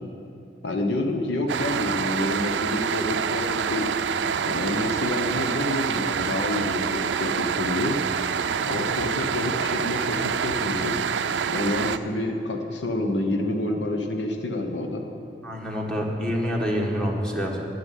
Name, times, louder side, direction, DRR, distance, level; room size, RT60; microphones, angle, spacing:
voice 1, 0.6-3.9 4.4-8.0 8.7-11.0 11.5-15.1, left 1 dB, 90° left, 3 dB, 1.0 m, -28 dB
sound 1, 1.5-12.0, right 7 dB, 80° right, 0.4 m, -27 dB
voice 2, 15.4-17.6, equal, 5° left, -1 dB, 1.4 m, -27 dB
10.0 x 7.0 x 9.2 m, 2.8 s
head